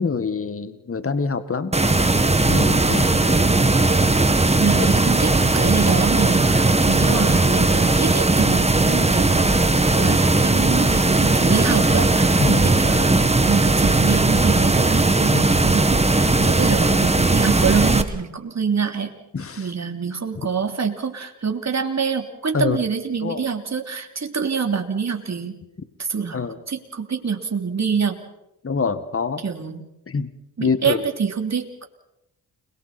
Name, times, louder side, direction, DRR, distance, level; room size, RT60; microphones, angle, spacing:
voice 1, 0.0-1.8 2.5-3.1 12.4-12.7 16.3-16.6 19.3-19.7 22.5-22.8 23.2-23.5 26.3-26.6 28.6-29.4 30.1-30.3 30.6-31.0, left 4 dB, 35° left, 11 dB, 1.9 m, -25 dB
sound 1, 1.7-18.0, right 2 dB, 15° right, 1.9 m, -18 dB
voice 2, 4.6-9.5 10.0-13.1 13.4-19.1 19.6-25.6 26.0-26.4 26.7-28.2 29.4-29.8 30.6-31.9, right 6 dB, 40° right, 5 dB, 3.3 m, -25 dB
29.5 x 22.5 x 4.5 m, 0.87 s
supercardioid pair, 60°, 40 cm